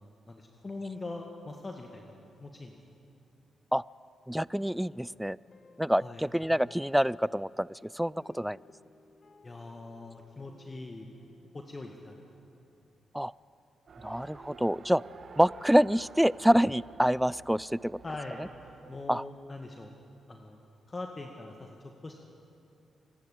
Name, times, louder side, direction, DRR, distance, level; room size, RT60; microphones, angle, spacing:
voice 1, 0.0-2.1 2.4-2.8 6.0-6.2 9.4-11.1 11.5-12.3 18.0-18.4 18.9-19.9 20.3-20.6 20.9-21.7 22.0-22.2, left 2 dB, 35° left, 2 dB, 1.8 m, -42 dB
voice 2, 4.3-5.4 5.8-8.6 13.1-13.3 14.0-15.0 15.4-18.0 18.4-18.5 19.1-19.2, equal, 5° right, 22 dB, 0.4 m, -26 dB
sound 1, 4.5-13.1, left 4 dB, 50° left, 1.5 m, -60 dB
Race car auto racing, 13.9-19.0, right 5 dB, 60° right, 1.5 m, -51 dB
25.5 x 12.0 x 8.6 m, 2.8 s
hypercardioid pair, 45°, 0 cm